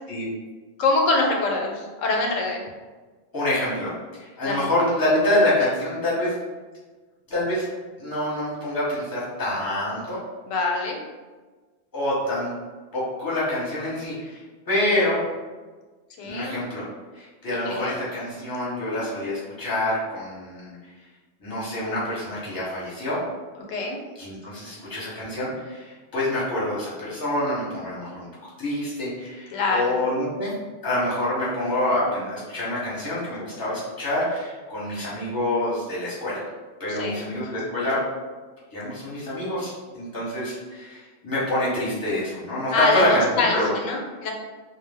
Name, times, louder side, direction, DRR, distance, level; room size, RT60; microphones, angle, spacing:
voice 1, 0.8-2.6 4.4-4.7 10.5-11.0 16.2-16.6 17.6-18.0 23.7-24.0 29.5-30.0 36.9-37.2 42.7-44.3, left 3 dB, 90° left, 1 dB, 0.9 m, -24 dB
voice 2, 3.3-3.9 4.2-6.3 7.3-7.6 8.0-10.2 11.9-12.5 12.9-14.4 14.7-15.2 16.2-16.8 17.1-20.7 21.4-23.2 24.2-28.3 28.6-30.5 30.8-36.4 36.8-38.0 38.7-43.7, left 1 dB, 20° left, -8 dB, 0.9 m, -26 dB
2.3 x 2.0 x 3.3 m, 1.3 s
omnidirectional pair, 1.3 m